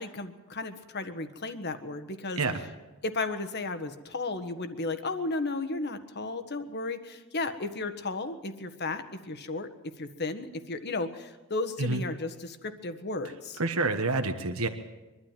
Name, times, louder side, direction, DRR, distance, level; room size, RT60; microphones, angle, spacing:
voice 1, 0.0-2.4 3.0-9.7 10.0-13.6, left 3 dB, 50° left, 9 dB, 1.5 m, -34 dB
voice 2, 13.6-14.7, right 3 dB, 75° right, 6 dB, 1.4 m, -28 dB
23.0 x 12.5 x 9.2 m, 1.1 s
head